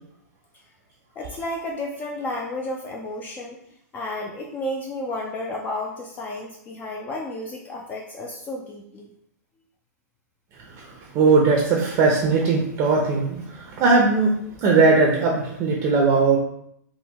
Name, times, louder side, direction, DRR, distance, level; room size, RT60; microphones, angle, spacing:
voice 1, 1.2-3.6 3.9-9.1, left 1 dB, 20° left, 0 dB, 0.3 m, -32 dB
voice 2, 10.7-16.4, right 4 dB, 35° right, -1 dB, 0.6 m, -19 dB
3.6 x 2.1 x 2.8 m, 0.72 s
hypercardioid pair, 130°, 9 cm